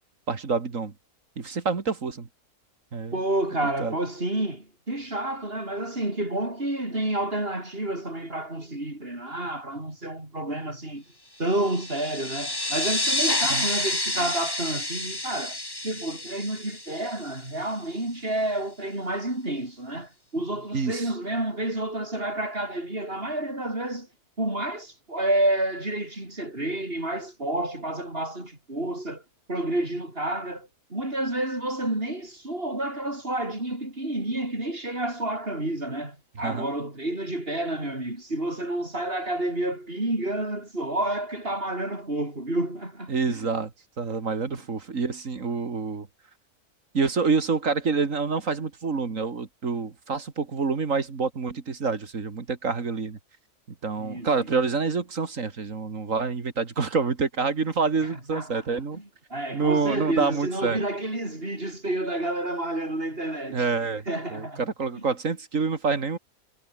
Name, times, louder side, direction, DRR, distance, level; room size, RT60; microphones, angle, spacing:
voice 1, 0.3-0.9 1.4-2.3 2.9-3.2 3.6-4.0 13.5-13.7 20.7-21.1 36.4-36.7 43.1-43.7 44.0-46.1 46.9-53.2 53.8-59.0 59.5-60.8 63.5-64.0 64.3-66.2, right 4 dB, 60° right, 2.5 m, -27 dB
voice 2, 3.1-11.0 11.4-24.1 24.4-29.2 29.5-43.4 54.0-54.5 58.3-58.6 58.9-63.7 64.1-64.6 65.0-65.1, right 1 dB, 40° right, 6.3 m, -30 dB
sound 1, 11.5-17.7, left 1 dB, 15° left, 3.0 m, -29 dB
omnidirectional pair, 1.6 m